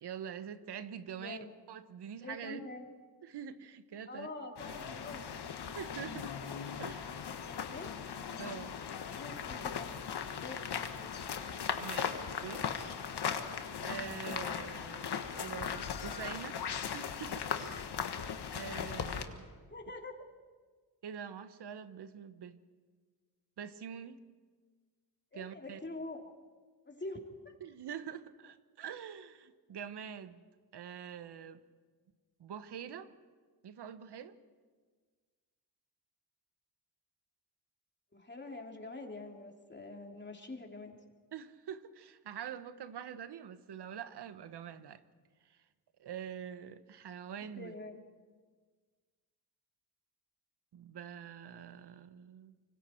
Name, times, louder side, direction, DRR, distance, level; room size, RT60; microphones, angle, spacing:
voice 1, 0.0-1.4 1.7-2.6 3.2-4.3 4.7-4.8 5.7-6.4 6.8-7.1 8.4-8.8 11.8-12.7 13.8-16.6 16.9-18.1 18.5-19.5 21.0-22.6 23.6-24.2 25.3-25.8 27.6-30.4 30.7-31.6 32.4-33.1 33.6-34.3 41.3-45.0 45.5-45.6 46.0-47.7 50.7-52.5, right 8 dB, 80° right, 12 dB, 1.1 m, -45 dB
voice 2, 1.2-1.5 2.2-2.8 4.1-5.2 7.4-8.0 9.0-10.0 10.4-10.6 11.0-11.1 19.7-20.2 25.3-26.3 26.9-27.2 38.1-40.9 47.6-48.0, left 2 dB, 25° left, 2 dB, 3.1 m, -45 dB
sound 1, 4.6-19.2, left 7 dB, 80° left, 1.5 m, -38 dB
25.5 x 24.5 x 4.5 m, 1.5 s
cardioid pair, 65°, 39 cm